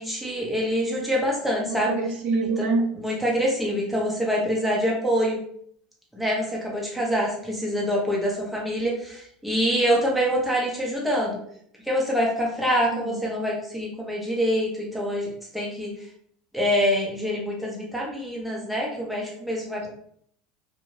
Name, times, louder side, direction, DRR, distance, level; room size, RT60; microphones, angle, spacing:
voice 1, 0.0-1.9 2.6-2.7 2.9-5.4 6.1-11.4 11.8-15.3 15.5-15.9 16.5-19.9, equal, 5° right, -3 dB, 1.0 m, -25 dB
voice 2, 1.6-2.9 12.9-13.2, right 3 dB, 50° right, 0 dB, 0.7 m, -26 dB
2.5 x 2.3 x 3.2 m, 0.64 s
hypercardioid pair, 80°, 4 cm